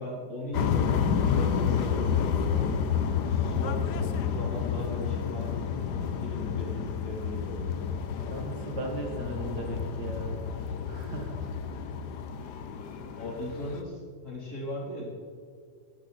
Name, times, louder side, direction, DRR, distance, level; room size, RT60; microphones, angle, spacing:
voice 1, 0.0-2.7 3.3-3.9 4.2-5.5 6.2-7.7 13.2-15.1, left 1 dB, 65° left, -4 dB, 4.7 m, -38 dB
sound 1, 0.5-13.8, left 7 dB, 85° left, 1.5 m, -30 dB
voice 2, 8.3-10.3 10.9-11.3, right 1 dB, 85° right, 1 dB, 3.0 m, -36 dB
18.5 x 12.5 x 4.3 m, 2.1 s
omnidirectional pair, 1.7 m